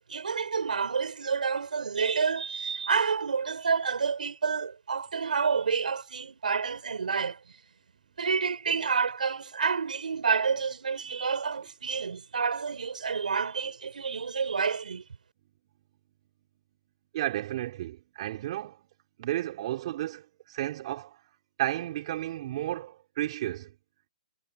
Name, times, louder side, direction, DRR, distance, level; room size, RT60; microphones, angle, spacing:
voice 1, 0.0-7.4 8.2-15.0, right 5 dB, 85° right, 6.6 m, -29 dB
voice 2, 17.1-18.8 19.2-21.2 21.6-23.7, right 14 dB, 50° right, 5.1 m, -33 dB
hypercardioid pair, 140°, 4 cm